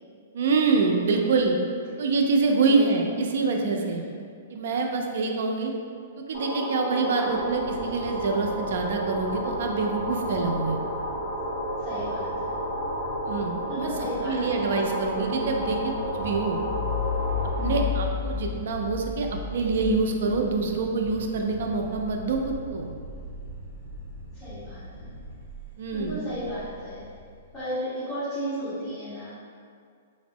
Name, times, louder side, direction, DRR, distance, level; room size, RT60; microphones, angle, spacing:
voice 1, 0.3-1.6 2.0-4.0 4.5-5.7 6.2-10.8 13.3-13.9 14.2-15.8 16.1-16.6 17.6-22.9 25.8-26.2, right 4 dB, 65° right, 2 dB, 0.3 m, -26 dB
voice 2, 3.7-4.1 7.1-7.4 11.8-12.5 13.7-14.6 17.6-17.9 24.3-25.1 25.9-27.0 27.5-29.3, equal, 15° left, -18 dB, 1.1 m, -34 dB
sound 1, 6.3-17.8, right 1 dB, 40° left, 1.0 m, -31 dB
sound 2, 7.2-25.6, left 1 dB, 70° left, 0.4 m, -41 dB
sound 3, 16.2-24.4 24.8-27.4, left 7 dB, 20° right, 0.8 m, -35 dB
3.4 x 2.0 x 2.6 m, 2.2 s
hypercardioid pair, 160°, 0 cm